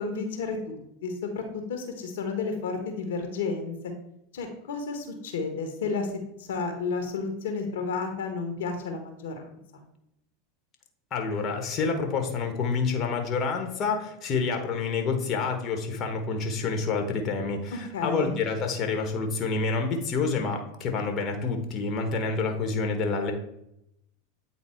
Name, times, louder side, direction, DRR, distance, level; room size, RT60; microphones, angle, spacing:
voice 1, 0.0-3.7 4.3-6.1 6.4-9.8 17.7-18.3, left 4 dB, 75° left, 5 dB, 1.3 m, -32 dB
voice 2, 11.1-23.3, left 4 dB, 40° left, 4 dB, 1.4 m, -28 dB
8.7 x 3.8 x 4.5 m, 0.79 s
hypercardioid pair, 90°, 0 cm